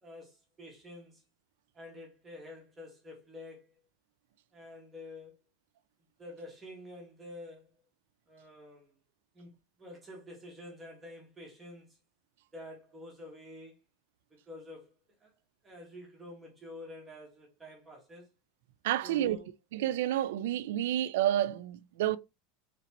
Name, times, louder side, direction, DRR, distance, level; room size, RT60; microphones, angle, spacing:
voice 1, 0.0-1.2 1.7-3.8 4.5-5.4 6.2-7.8 8.3-9.0 9.3-12.0 12.5-13.8 14.3-15.3 15.6-18.3 19.0-19.5, left 1 dB, 15° right, 1.3 m, -48 dB
voice 2, 18.8-19.4 19.7-22.2, right 12 dB, 80° right, 0.3 m, -29 dB
4.0 x 3.3 x 2.9 m
supercardioid pair, 155°, 0 cm